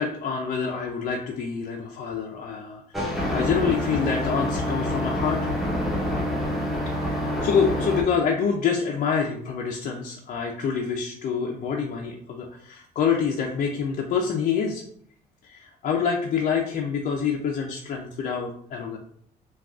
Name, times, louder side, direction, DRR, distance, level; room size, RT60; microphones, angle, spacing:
voice 1, 0.0-5.4 7.0-14.8 15.4-19.0, left 6 dB, 50° left, 0 dB, 0.4 m, -27 dB
sound 1, 2.9-8.0, left 1 dB, ahead, 0.8 m, -27 dB
3.5 x 2.3 x 2.4 m, 0.65 s
cardioid pair, 110°, 17 cm